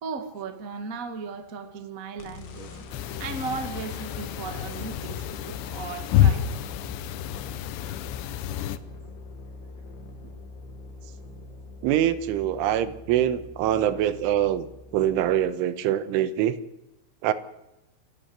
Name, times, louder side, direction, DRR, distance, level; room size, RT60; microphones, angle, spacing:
voice 1, 0.0-6.4, right 5 dB, 45° right, 6 dB, 1.1 m, -36 dB
sound 1, 2.2-15.5, left 3 dB, 60° left, 3.6 m, -43 dB
sound 2, 2.9-8.8, left 11 dB, 75° left, 2.8 m, -28 dB
voice 2, 11.8-14.7 14.9-16.6 17.2-17.3, right 11 dB, 85° right, 12 dB, 3.5 m, -24 dB
28.0 x 13.0 x 8.0 m, 0.94 s
omnidirectional pair, 5.6 m